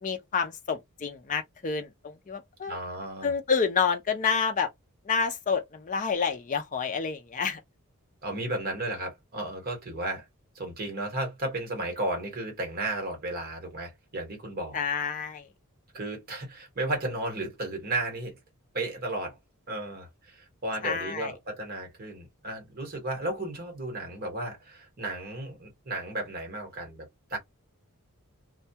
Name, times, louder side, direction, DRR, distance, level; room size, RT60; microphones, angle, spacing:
voice 1, 0.0-2.8 3.2-4.7 5.1-7.6 14.7-15.4 20.8-21.3, left 6 dB, 35° left, 0.5 m, -28 dB
voice 2, 2.7-3.3 8.2-10.3 10.5-14.8 15.9-18.4 18.7-19.4 19.7-27.4, right 2 dB, 40° right, 1.1 m, -34 dB
2.2 x 2.2 x 2.7 m
head